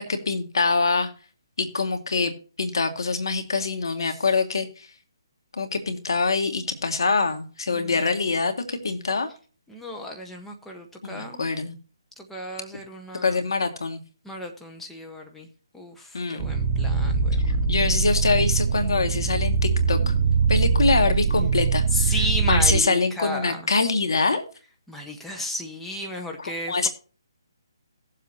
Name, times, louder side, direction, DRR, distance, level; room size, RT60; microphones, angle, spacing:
voice 1, 0.1-1.1 1.6-2.3 2.6-4.9 5.5-9.3 11.0-11.7 13.2-14.0 16.1-16.5 17.7-20.1 20.5-24.4 26.4-26.9, left 4 dB, 70° left, 6 dB, 2.2 m, -24 dB
voice 2, 7.7-8.2 9.7-11.5 12.2-13.4 14.2-15.5 15.7-17.4 21.9-23.7 24.9-26.9, left 1 dB, 5° left, 1 dB, 1.4 m, -34 dB
sound 1, 16.4-22.8, right 5 dB, 30° right, 0.6 m, -22 dB
18.0 x 7.6 x 3.0 m, 0.37 s
figure-of-eight pair, 150°, 2 cm